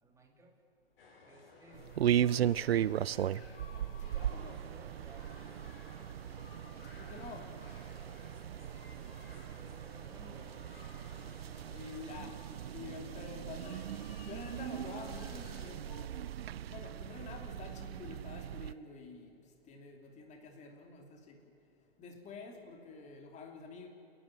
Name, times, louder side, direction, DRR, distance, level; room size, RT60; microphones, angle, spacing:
voice 1, 0.0-0.6 1.2-3.3 3.5-6.0 8.4-10.7 11.1-11.9 16.7-17.0, right 2 dB, 10° right, 1 dB, 3.1 m, -59 dB
sound 1, 1.0-15.7, left 3 dB, 70° left, 5.3 m, -56 dB
sound 2, 1.7-18.7, right 10 dB, 90° right, 0.5 m, -37 dB
voice 2, 4.2-4.5 6.9-7.5 11.7-12.4 12.7-13.9 14.3-16.1 16.7-19.3 19.7-21.5 22.0-23.9, left 4 dB, 25° left, 3 dB, 2.9 m, -48 dB
29.0 x 11.0 x 9.9 m, 2.6 s
hypercardioid pair, 130°, 30 cm